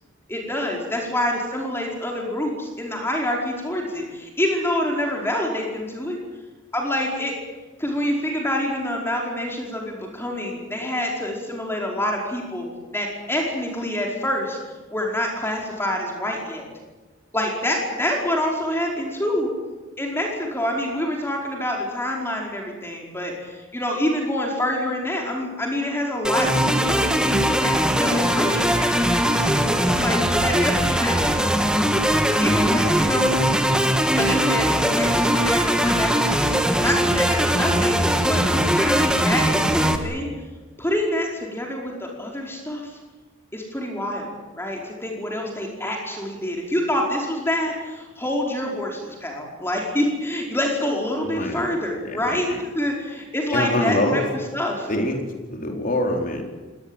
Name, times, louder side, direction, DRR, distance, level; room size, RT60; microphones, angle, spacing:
voice 1, 0.3-6.2 6.7-7.4 7.8-12.7 12.9-14.6 14.9-16.6 17.3-19.5 20.0-28.7 29.9-31.3 32.0-33.3 34.1-36.3 36.8-40.3 40.8-42.9 43.5-54.9, left 1 dB, 10° left, 0 dB, 4.9 m, -26 dB
sound 1, 26.2-40.0, equal, 5° right, 2.0 m, -20 dB
voice 2, 33.7-34.3 51.2-51.7 52.1-52.4 53.5-54.2 54.9-55.2 55.5-56.4, left 1 dB, 40° left, 3 dB, 4.3 m, -25 dB
24.5 x 19.0 x 9.0 m, 1.2 s
head